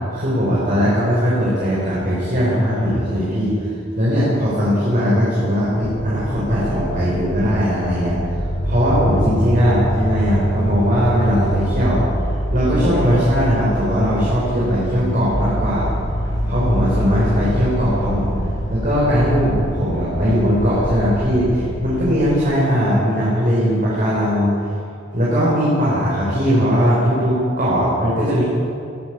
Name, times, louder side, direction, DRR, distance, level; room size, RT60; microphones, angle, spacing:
voice 1, 0.1-3.7 3.9-8.3 8.6-12.0 12.5-15.9 16.5-18.3 18.7-24.5 25.1-28.4, equal, 45° right, -7 dB, 6.8 m, -19 dB
sound 1, 5.8-22.4, equal, 85° left, 5.2 m, -25 dB
23.0 x 16.0 x 7.2 m, 2.6 s
head